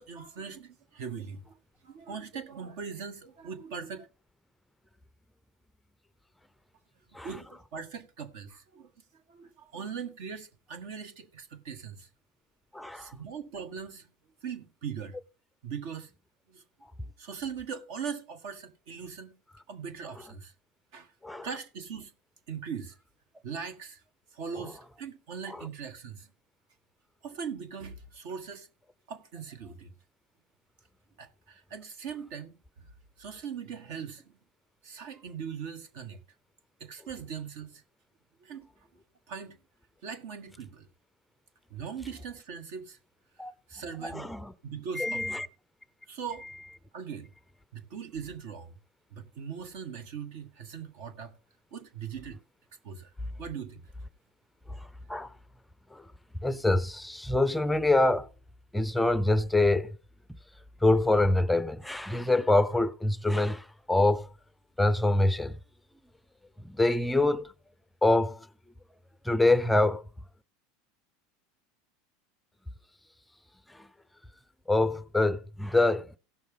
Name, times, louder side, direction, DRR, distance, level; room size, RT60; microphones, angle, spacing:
voice 1, 0.0-1.6 1.8-4.1 7.2-8.9 9.3-12.1 12.9-14.1 14.4-15.2 15.6-16.1 16.5-16.6 17.0-19.4 19.7-20.5 20.9-21.1 21.4-22.1 22.5-23.0 23.4-24.0 24.3-26.3 27.2-28.7 29.1-29.9 31.2-32.9 33.2-34.4 34.8-36.2 36.8-37.8 38.4-38.7 39.3-39.6 40.0-40.9 41.7-43.0 43.7-44.3 44.6-45.2 46.1-46.5 46.9-47.3 47.7-48.7 49.1-51.3 51.7-52.4 52.8-53.1 53.4-53.8, right 6 dB, 70° right, 1.6 m, -40 dB
voice 2, 12.7-13.1 21.2-21.5 25.5-25.7 43.4-43.5 44.0-44.5 45.0-45.5 46.4-46.5 54.7-55.3 55.9-56.1 56.4-58.3 58.7-59.9 60.8-64.3 64.8-65.6 66.6-67.5 68.0-68.5 69.2-70.0 73.7-73.9 74.7-76.2, left 2 dB, 5° left, 0.5 m, -25 dB
16.5 x 6.4 x 3.6 m
hypercardioid pair, 105°, 0 cm